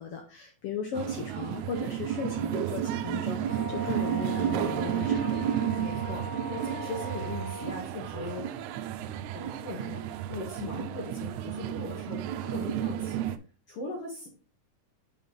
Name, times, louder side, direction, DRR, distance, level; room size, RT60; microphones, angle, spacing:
voice 1, 0.0-5.5, left 5 dB, 70° left, 3 dB, 1.4 m, -37 dB
sound 1, 0.9-13.4, right 10 dB, 80° right, 1.9 m, -32 dB
Wind instrument woodwind instrument, 3.4-7.9, right 2 dB, 25° left, 1.9 m, -39 dB
voice 2, 5.8-8.6 9.3-13.2 13.7-14.3, left 2 dB, 55° left, -3 dB, 2.4 m, -39 dB
6.4 x 5.7 x 3.9 m, 0.37 s
omnidirectional pair, 3.6 m